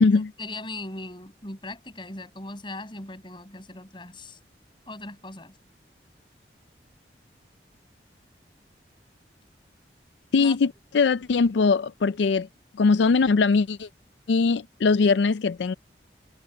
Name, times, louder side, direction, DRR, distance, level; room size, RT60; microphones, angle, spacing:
voice 1, 0.1-4.4 4.9-5.5 10.4-10.6, left 2 dB, 30° left, 6.4 m, -39 dB
voice 2, 10.3-12.5 12.8-13.9 14.3-15.7, left 4 dB, 85° left, 0.4 m, -21 dB
head